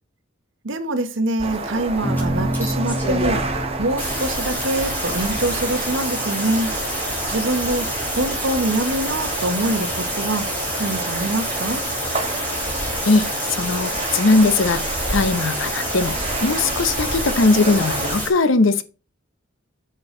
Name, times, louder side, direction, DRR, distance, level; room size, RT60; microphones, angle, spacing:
voice 1, 0.6-6.7 7.3-7.9 8.2-10.4 10.8-11.8, right 2 dB, 70° right, 1.3 m, -24 dB
sound 1, 1.4-18.2, right 2 dB, 30° right, 1.7 m, -29 dB
sound 2, 2.0-8.6, right 1 dB, 50° left, 2.9 m, -30 dB
sound 3, 2.2-2.3 2.5-3.5 4.0-18.3, equal, 10° left, 3.6 m, -28 dB
voice 2, 13.0-16.1 16.4-18.8, left 3 dB, 75° left, 0.8 m, -19 dB
8.8 x 6.7 x 3.8 m
head